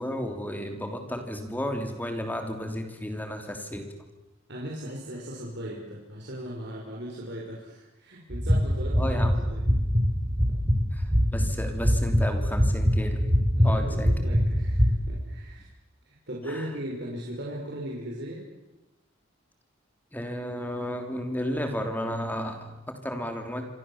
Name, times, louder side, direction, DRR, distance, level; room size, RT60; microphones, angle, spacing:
voice 1, 0.0-3.9 9.0-9.5 10.9-13.3 13.6-14.1 16.5-16.7 20.1-23.6, equal, 10° left, 5 dB, 3.2 m, -33 dB
voice 2, 4.5-9.6 13.5-15.7 16.1-18.4, equal, 60° right, -3 dB, 5.8 m, -38 dB
sound 1, 8.3-14.9, equal, 25° right, 6.7 m, -24 dB
27.0 x 26.0 x 7.4 m, 1.0 s
head